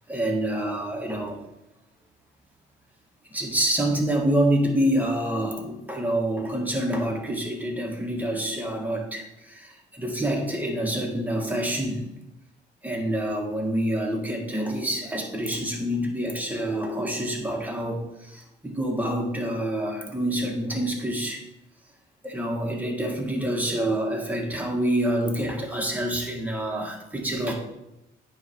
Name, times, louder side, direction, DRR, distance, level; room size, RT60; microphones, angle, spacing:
voice 1, 0.1-1.4 3.3-12.1 12.8-21.4 22.2-27.5, right 1 dB, 10° right, 0 dB, 1.6 m, -27 dB
8.7 x 3.4 x 5.5 m, 0.90 s
cardioid pair, 90°, 20 cm